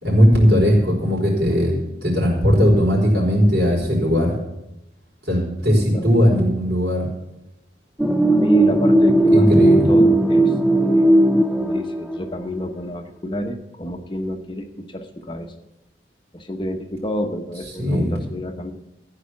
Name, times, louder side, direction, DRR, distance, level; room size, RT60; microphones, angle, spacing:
voice 1, 0.0-1.7 2.0-4.3 5.3-7.0 9.3-9.9 17.8-18.2, equal, 65° right, -2 dB, 4.8 m, -18 dB
sound 1, 8.0-12.4, right 1 dB, ahead, 0.5 m, -16 dB
voice 2, 8.3-15.5 16.3-18.7, left 1 dB, 25° left, 6 dB, 0.9 m, -29 dB
14.5 x 4.9 x 8.4 m, 0.89 s
head